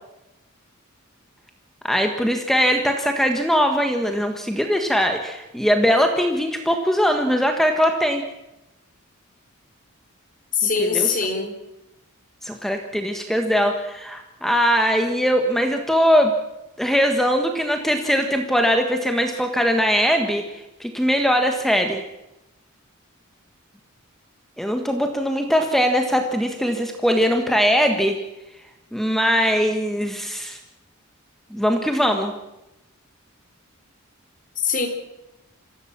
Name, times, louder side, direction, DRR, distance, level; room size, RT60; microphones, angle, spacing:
voice 1, 1.8-8.2 10.8-11.2 12.4-16.3 16.8-20.4 20.8-22.0 24.6-28.2 28.9-30.6 31.5-32.3, equal, ahead, 4 dB, 1.5 m, -21 dB
voice 2, 10.5-11.5 34.6-34.9, left 5 dB, 40° left, 5 dB, 3.8 m, -22 dB
26.0 x 16.0 x 7.4 m, 0.96 s
head